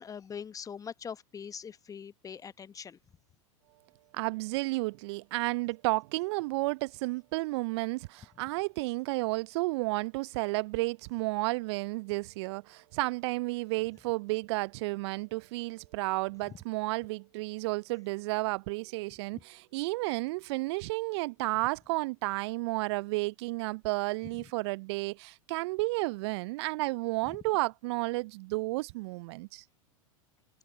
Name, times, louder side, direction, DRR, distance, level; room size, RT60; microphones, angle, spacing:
voice 1, 0.0-3.0, left 7 dB, 20° left, 1.0 m, -42 dB
voice 2, 4.1-29.6, right 23 dB, 50° right, 0.5 m, -32 dB
figure-of-eight pair, 90°, 18 cm